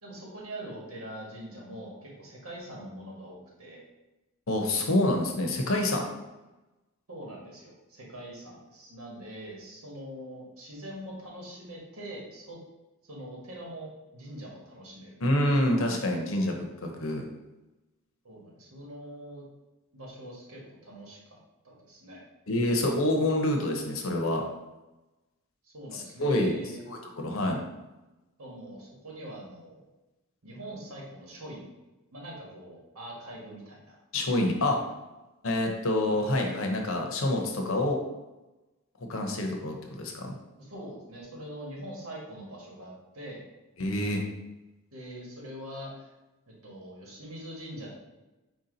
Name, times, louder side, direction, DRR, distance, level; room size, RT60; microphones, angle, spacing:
voice 1, 0.0-3.8 7.1-12.6 13.1-15.2 18.2-19.4 19.9-21.4 21.6-22.2 25.6-26.9 28.4-29.8 30.4-31.7 32.1-34.0 40.6-43.4 44.9-46.1 46.5-47.9, right 1 dB, 80° right, -3 dB, 1.4 m, -43 dB
voice 2, 4.5-6.1 15.2-17.2 22.5-24.4 25.9-26.5 26.9-27.0 27.2-27.6 34.1-34.8 35.4-38.0 39.1-40.3 43.8-44.2, left 1 dB, 70° left, 2 dB, 0.8 m, -27 dB
4.6 x 2.8 x 3.9 m, 1.0 s
head